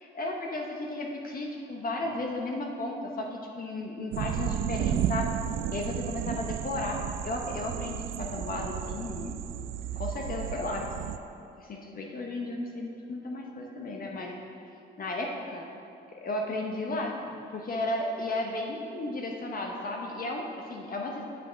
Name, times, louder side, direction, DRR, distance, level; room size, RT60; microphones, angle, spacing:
voice 1, 0.1-5.4 5.7-9.4 10.0-10.9 11.6-14.3 15.0-15.7 16.1-21.2, left 2 dB, 45° left, 0 dB, 1.0 m, -34 dB
sound 1, 4.1-11.2, right 10 dB, 85° right, 0.4 m, -33 dB
8.4 x 6.1 x 5.1 m, 2.7 s
cardioid pair, 90°, 20 cm